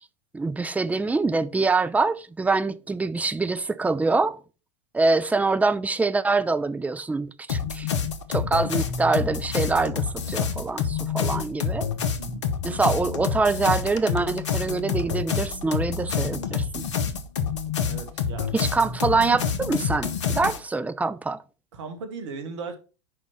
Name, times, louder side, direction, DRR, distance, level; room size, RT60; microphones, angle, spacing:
voice 1, 0.3-4.4 4.9-7.9 8.3-11.9 12.6-16.9 18.5-21.4, right 3 dB, 10° right, 0.6 m, -24 dB
sound 1, 7.5-20.6, left 7 dB, 70° left, 1.0 m, -28 dB
voice 2, 12.2-12.5 17.8-18.7 21.7-22.8, right 4 dB, 65° right, 1.8 m, -37 dB
6.5 x 5.3 x 5.8 m
figure-of-eight pair, 85°, 16 cm